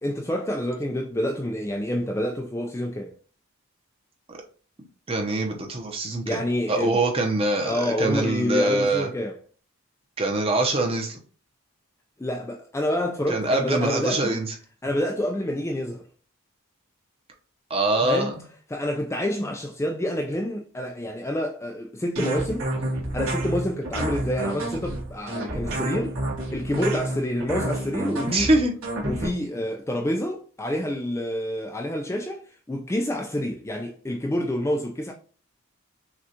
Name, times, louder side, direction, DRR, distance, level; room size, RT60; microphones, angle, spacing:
voice 1, 0.0-3.1 6.3-7.0 7.6-9.4 12.2-14.4 14.8-16.0 18.0-18.3 18.7-22.7 23.1-26.2 26.5-28.5 29.0-35.1, left 1 dB, 10° left, 0.3 m, -28 dB
voice 2, 5.1-6.4 6.7-9.1 10.2-11.2 13.3-14.5 17.7-18.3 28.3-28.7, right 2 dB, 25° right, 0.7 m, -24 dB
sound 1, 22.2-29.3, right 1 dB, 70° right, 1.3 m, -29 dB
6.0 x 2.4 x 2.8 m
head